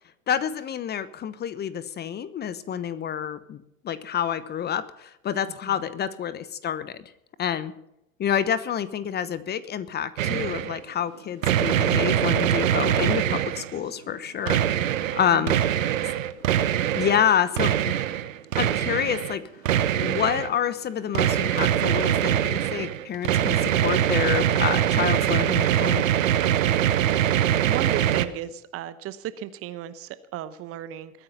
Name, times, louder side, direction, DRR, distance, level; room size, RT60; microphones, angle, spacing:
voice 1, 0.3-7.1 7.4-7.7 8.2-14.6 15.1-15.6 16.9-17.9 18.6-19.4 20.0-26.0, left 9 dB, 25° left, 15 dB, 1.0 m, -28 dB
sound 1, 10.2-10.8 11.4-13.8 14.5-17.3 17.6-19.4 19.6-20.5 21.1-28.2, right 11 dB, 70° right, 1.1 m, -23 dB
voice 2, 13.2-13.6 15.3-15.5 15.8-16.0 27.6-31.2, right 11 dB, 35° right, 14 dB, 1.0 m, -36 dB
21.5 x 9.8 x 5.6 m, 0.82 s
figure-of-eight pair, 90°, 41 cm